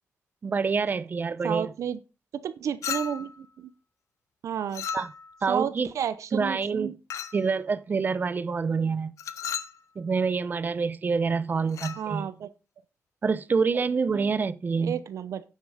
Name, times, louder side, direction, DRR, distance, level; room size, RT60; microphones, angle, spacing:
voice 1, 0.4-1.7 4.9-5.1 5.4-5.9 6.3-7.0 7.3-9.1 10.0-12.3 13.2-15.0, right 5 dB, 35° right, 0.7 m, -27 dB
voice 2, 1.4-2.0 2.3-3.7 4.4-4.9 5.5-6.9 12.0-12.5 14.8-15.4, right 8 dB, 80° right, 0.7 m, -31 dB
Chink clink, 2.8-3.4 4.7-5.4 7.1-7.5 9.2-9.8 11.7-12.0, left 7 dB, 90° left, 0.9 m, -34 dB
9.7 x 7.5 x 5.0 m
wide cardioid pair, 135°, 5 cm